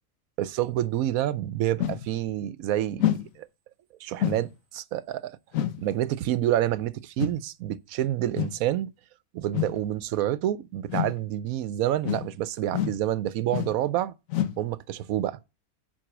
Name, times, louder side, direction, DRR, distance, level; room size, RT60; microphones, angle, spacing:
voice 1, 0.4-3.5 4.0-5.3 5.8-8.9 9.3-14.1 14.6-15.4, right 12 dB, 80° right, 1.0 m, -28 dB
sound 1, 1.8-2.1 3.0-3.3 4.2-4.5 5.5-5.8 7.2-7.4 8.4-8.6 9.5-9.8 10.9-11.2 12.0-12.3 12.7-13.0 13.5-13.8 14.3-14.6, left 11 dB, 70° left, 1.2 m, -28 dB
8.8 x 4.7 x 6.0 m
omnidirectional pair, 1.5 m